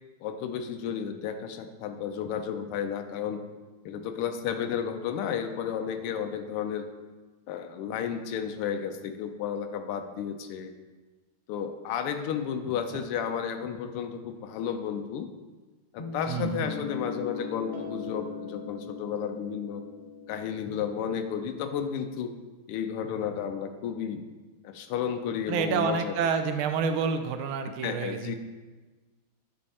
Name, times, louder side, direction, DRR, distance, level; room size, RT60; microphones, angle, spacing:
voice 1, 0.2-3.4 3.8-6.8 7.5-10.7 11.5-15.3 15.9-19.8 20.3-22.3 22.7-24.2 24.6-26.1 27.8-28.4, left 8 dB, 85° left, 7 dB, 1.5 m, -32 dB
sound 1, 16.0-21.7, left 4 dB, 15° left, 1.5 m, -39 dB
voice 2, 16.3-16.7 25.5-28.4, right 6 dB, 80° right, 8 dB, 1.4 m, -28 dB
9.9 x 4.3 x 4.2 m, 1.3 s
omnidirectional pair, 2.4 m